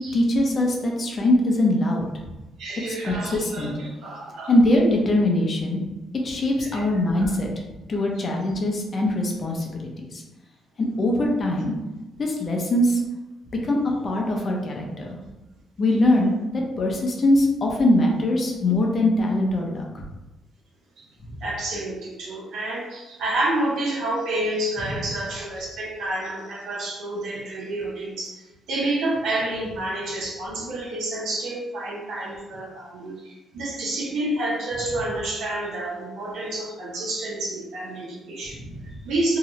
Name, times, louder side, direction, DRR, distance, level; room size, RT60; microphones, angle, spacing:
voice 1, 0.1-2.3 3.0-3.7 4.5-5.8 6.2-7.5 7.9-10.2 10.8-11.7 12.2-13.0 13.6-13.8 14.0-15.2 15.8-20.0 38.5-38.9, left 1 dB, 45° left, 0 dB, 0.6 m, -22 dB
voice 2, 2.6-4.5 6.6-7.0 21.0-21.1 21.4-38.6 39.0-39.4, right 1 dB, 75° right, -3 dB, 0.8 m, -29 dB
2.8 x 2.3 x 3.0 m, 1.1 s
cardioid pair, 90°, 0 cm